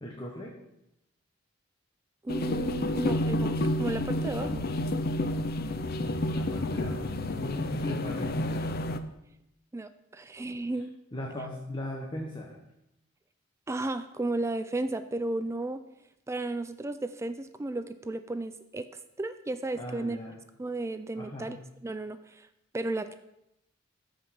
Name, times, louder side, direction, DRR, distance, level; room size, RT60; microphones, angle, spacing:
voice 1, 0.0-0.5 4.2-4.9 6.3-8.7 11.1-12.6 19.7-20.4 21.2-21.6, left 1 dB, 25° left, 0 dB, 1.1 m, -38 dB
voice 2, 2.2-4.5 9.7-10.9 13.7-15.8 16.3-18.9 19.2-20.2 20.6-22.5 22.7-23.1, right 2 dB, 15° right, 11 dB, 0.3 m, -34 dB
sound 1, 2.3-9.0, left 1 dB, 50° left, 0.6 m, -30 dB
13.5 x 5.2 x 5.8 m, 0.85 s
head